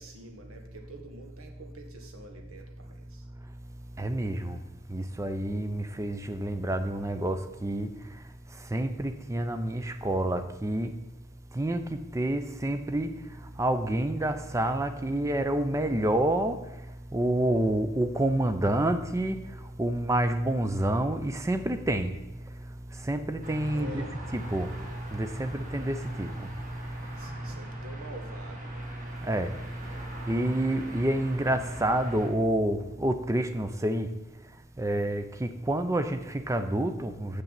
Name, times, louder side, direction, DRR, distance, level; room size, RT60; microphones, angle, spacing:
voice 1, 0.0-3.2 23.7-24.2 27.2-28.9, right 1 dB, 75° right, 1.5 m, -47 dB
voice 2, 4.0-4.6 4.9-7.9 8.6-10.9 11.5-13.2 13.6-16.7 17.1-22.1 22.4-22.5 22.9-24.0 24.3-24.7 25.1-26.5 29.2-29.5 30.3-34.1 34.8-37.4, right 1 dB, 15° right, 0.5 m, -28 dB
sound 1, 23.4-32.3, right 1 dB, 35° right, 1.6 m, -41 dB
6.8 x 6.7 x 7.4 m
head